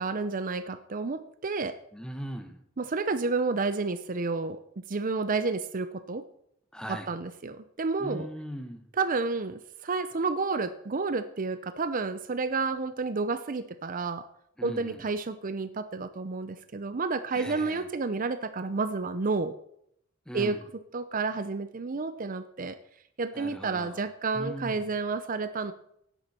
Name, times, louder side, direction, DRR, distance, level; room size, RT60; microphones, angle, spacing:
voice 1, 0.0-1.7 2.8-6.2 6.9-8.3 8.9-14.2 14.6-19.5 20.3-20.6 20.9-22.8 23.2-25.7, right 4 dB, 45° right, 12 dB, 0.6 m, -30 dB
voice 2, 1.9-2.6 6.7-7.1 8.0-8.9 14.6-15.0 17.3-17.9 20.3-20.6 23.3-24.0 24.3-24.9, equal, 5° left, 7 dB, 1.2 m, -39 dB
13.5 x 10.0 x 4.3 m, 0.73 s
head